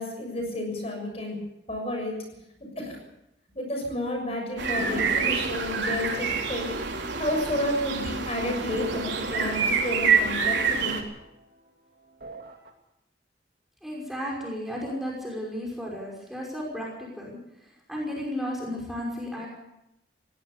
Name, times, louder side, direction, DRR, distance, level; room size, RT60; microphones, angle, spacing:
voice 1, 0.0-1.4 1.7-2.1 2.6-3.0 3.5-6.7 7.2-11.0, left 1 dB, 35° left, 2 dB, 6.8 m, -31 dB
sound 1, 4.6-11.0, right 5 dB, 90° right, 4.0 m, -27 dB
sound 2, 4.8-7.8 8.1-8.2 8.7-11.7 12.1-12.7, right 1 dB, 55° right, 3.0 m, -40 dB
voice 2, 13.8-17.4 17.6-19.5, equal, ahead, -3 dB, 5.6 m, -34 dB
21.5 x 17.5 x 6.9 m, 0.84 s
head